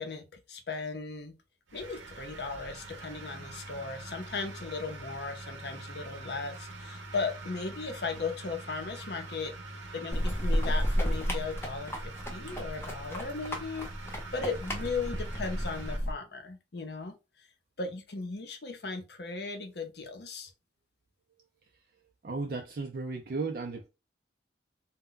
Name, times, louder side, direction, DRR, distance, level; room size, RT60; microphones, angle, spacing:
voice 1, 0.0-1.3 1.7-9.5 9.9-17.5 17.8-20.5, left 4 dB, 55° left, 0.6 m, -37 dB
sound 1, 1.7-16.0, right 2 dB, 80° right, 0.7 m, -44 dB
sound 2, 10.1-16.1, equal, 10° left, 0.5 m, -32 dB
voice 2, 22.2-23.9, right 3 dB, 50° right, 0.4 m, -35 dB
2.2 x 2.1 x 3.7 m
head